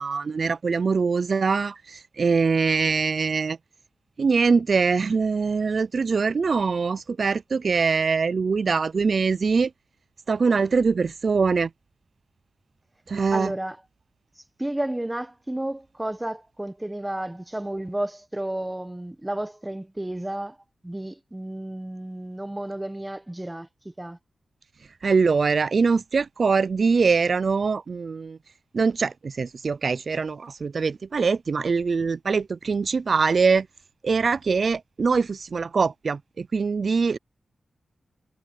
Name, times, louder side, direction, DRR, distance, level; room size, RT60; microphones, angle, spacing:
voice 1, 0.0-3.6 4.2-9.7 10.3-11.7 13.1-13.5 25.0-28.4 28.7-33.7 34.0-37.2, right 5 dB, 50° right, 0.4 m, -23 dB
voice 2, 13.3-13.8 14.6-20.6 20.8-24.2, right 1 dB, 10° right, 1.3 m, -32 dB
wide cardioid pair, 150°, 0 cm